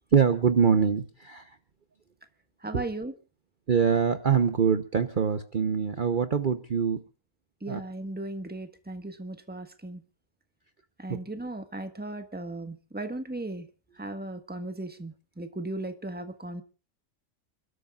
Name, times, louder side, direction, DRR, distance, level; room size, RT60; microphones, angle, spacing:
voice 1, 0.1-1.5 2.7-2.8 3.7-7.0 7.7-7.8 11.1-11.2, right 6 dB, 40° right, 9 dB, 1.0 m, -24 dB
voice 2, 2.6-3.1 7.6-10.0 11.0-13.7 14.0-16.6, right 2 dB, 5° right, 7 dB, 1.3 m, -36 dB
29.5 x 13.0 x 2.5 m, 0.34 s
omnidirectional pair, 1.5 m